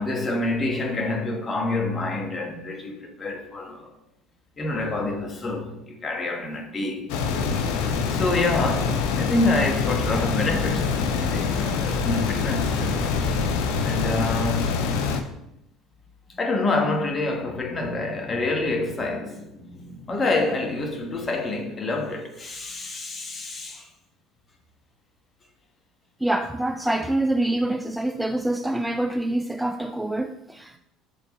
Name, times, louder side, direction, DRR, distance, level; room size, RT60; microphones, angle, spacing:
voice 1, 0.0-3.9 4.6-7.1 8.1-13.0 13.8-14.8 16.3-23.9, left 2 dB, 30° left, 1.4 m, -27 dB
sound 1, 7.1-15.2, left 5 dB, 70° left, 0.6 m, -25 dB
voice 2, 26.2-30.8, right 1 dB, 5° right, 0.3 m, -26 dB
7.3 x 4.5 x 3.2 m
hypercardioid pair, 70°, 0 cm